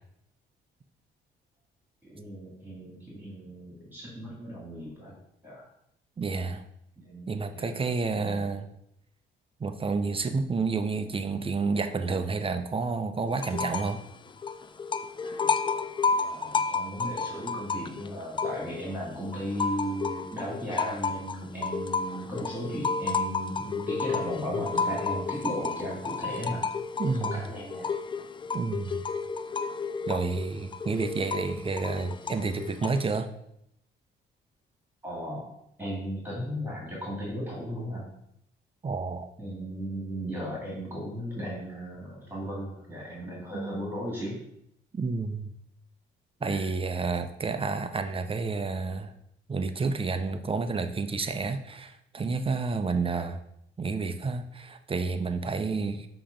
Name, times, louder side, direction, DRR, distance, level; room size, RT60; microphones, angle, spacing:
voice 1, 2.0-5.2 5.4-5.6 7.0-7.7 15.2-26.7 27.2-27.9 35.0-35.4 35.8-38.1 39.4-44.4 46.4-46.7, equal, 10° right, -4 dB, 2.0 m, -36 dB
voice 2, 6.2-6.6 7.3-8.7 9.6-14.0 27.0-27.4 28.5-29.0 30.1-33.3 38.8-39.3 43.5-43.7 44.9-45.5 46.4-49.1 49.5-53.4 53.8-56.1, right 4 dB, 25° right, 8 dB, 0.5 m, -30 dB
sound 1, 13.4-14.0 14.3-18.9 19.3-33.2, left 4 dB, 25° left, 0.4 m, -31 dB
7.2 x 3.0 x 5.0 m, 0.76 s
cardioid pair, 90°, 20 cm